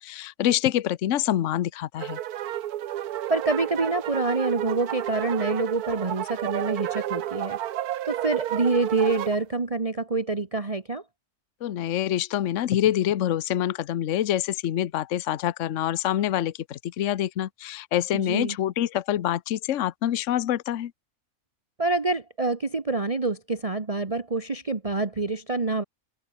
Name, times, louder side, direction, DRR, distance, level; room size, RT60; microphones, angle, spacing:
voice 1, 0.0-2.2 11.6-20.9, left 11 dB, 60° left, 1.1 m, -26 dB
sound 1, 2.0-9.4, right 12 dB, 75° right, 1.3 m, -31 dB
voice 2, 3.3-7.6 8.0-11.0 18.1-18.5 21.8-25.8, right 3 dB, 25° right, 1.3 m, -26 dB
omnidirectional pair, 1.6 m